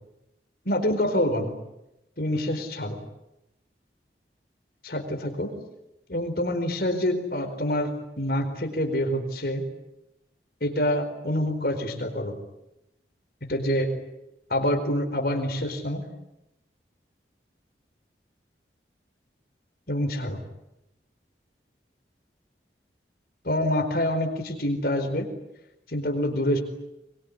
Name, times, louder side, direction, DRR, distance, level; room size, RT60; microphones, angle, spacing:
voice 1, 0.6-1.5 2.2-3.0 4.8-5.5 6.1-9.6 10.6-12.4 13.5-13.9 14.5-16.1 19.9-20.4 23.4-25.3 25.9-26.6, left 1 dB, 55° left, 6 dB, 4.5 m, -26 dB
23.5 x 23.0 x 9.9 m, 0.89 s
head